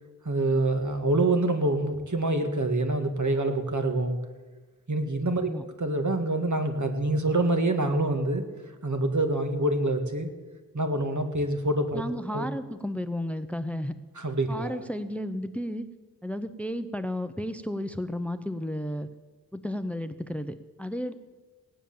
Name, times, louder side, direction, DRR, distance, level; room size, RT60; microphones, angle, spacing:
voice 1, 0.3-4.2 4.9-5.5 5.8-8.5 8.8-10.4 10.7-12.0 12.3-12.5 14.2-14.8, right 2 dB, 50° right, 6 dB, 1.9 m, -26 dB
voice 2, 11.9-13.9 14.5-15.9 16.2-19.1 19.5-21.1, equal, 5° left, 11 dB, 0.8 m, -33 dB
17.0 x 10.0 x 7.2 m, 1.3 s
wide cardioid pair, 55°, 39 cm